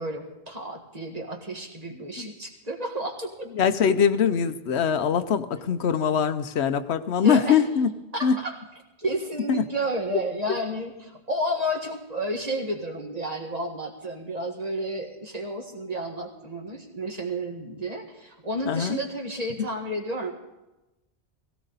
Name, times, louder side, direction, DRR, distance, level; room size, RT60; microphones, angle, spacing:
voice 1, 0.0-3.5 7.2-7.5 8.1-8.6 9.0-20.3, right 1 dB, 40° right, 1 dB, 1.9 m, -31 dB
voice 2, 3.5-7.9 8.2-8.3 9.5-9.6 18.7-19.0, left 7 dB, 85° left, 10 dB, 1.0 m, -22 dB
17.0 x 16.5 x 4.1 m, 1.0 s
omnidirectional pair, 1.1 m